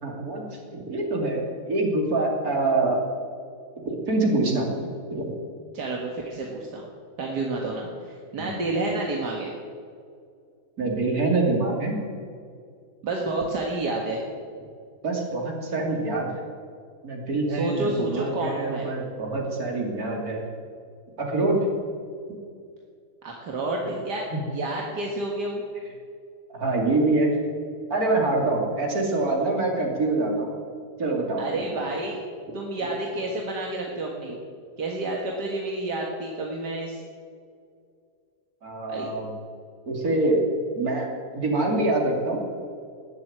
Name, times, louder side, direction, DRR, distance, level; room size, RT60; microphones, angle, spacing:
voice 1, 0.0-3.0 3.8-5.3 8.4-8.5 10.8-12.0 15.0-16.4 17.0-20.5 21.2-21.7 23.8-23.9 24.3-24.4 26.5-27.4 27.9-30.5 31.0-31.8 38.6-39.3 39.9-40.4 40.8-42.4, right 2 dB, 60° right, 0 dB, 3.4 m, -25 dB
voice 2, 5.7-6.8 7.2-9.5 13.0-14.2 17.5-18.9 23.2-24.2 24.5-25.6 31.4-32.2 32.5-34.4 34.8-37.0 38.9-39.1, right 2 dB, 80° right, -1 dB, 2.3 m, -29 dB
19.5 x 7.7 x 8.9 m, 2.3 s
omnidirectional pair, 1.8 m